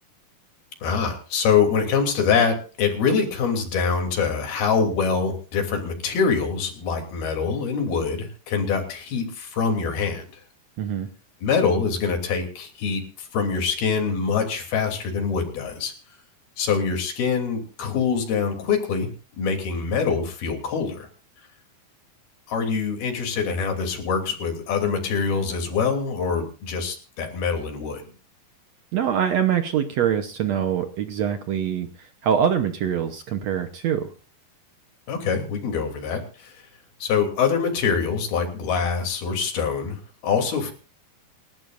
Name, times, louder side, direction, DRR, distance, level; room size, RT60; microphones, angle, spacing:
voice 1, 0.8-10.4 11.4-15.9 16.6-19.1 19.4-21.1 22.5-28.0 35.1-36.6 37.0-40.7, left 5 dB, 75° left, 4 dB, 4.9 m, -24 dB
voice 2, 10.8-11.1 28.9-34.1, right 8 dB, 75° right, 7 dB, 1.5 m, -24 dB
28.5 x 12.0 x 2.6 m, 0.36 s
omnidirectional pair, 4.5 m